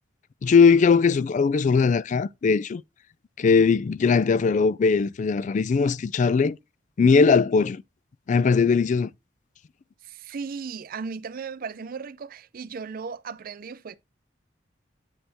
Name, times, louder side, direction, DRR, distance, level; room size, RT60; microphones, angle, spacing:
voice 1, 0.4-2.8 3.4-6.6 7.0-7.8 8.3-9.1, left 5 dB, 40° left, 0.3 m, -20 dB
voice 2, 10.0-14.0, right 5 dB, 50° right, 0.4 m, -36 dB
8.9 x 4.3 x 3.4 m
head